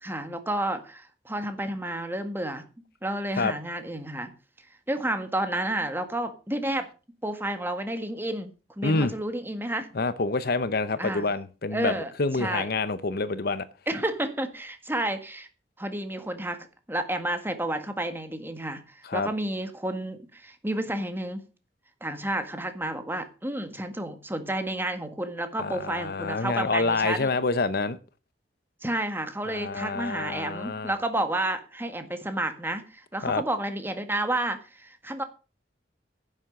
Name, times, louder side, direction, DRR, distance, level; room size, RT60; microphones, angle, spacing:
voice 1, 0.0-2.6 3.0-4.3 4.9-6.9 7.2-9.9 11.0-11.3 11.7-12.1 12.4-12.7 13.9-15.5 15.8-21.4 22.0-27.3 28.8-35.2, right 1 dB, 15° right, 8 dB, 1.7 m, -31 dB
voice 2, 8.8-9.1 9.9-13.7 19.0-19.3 25.6-28.0 29.5-30.9 33.2-33.4, left 3 dB, 60° left, 15 dB, 0.9 m, -27 dB
11.0 x 7.5 x 6.5 m, 0.34 s
head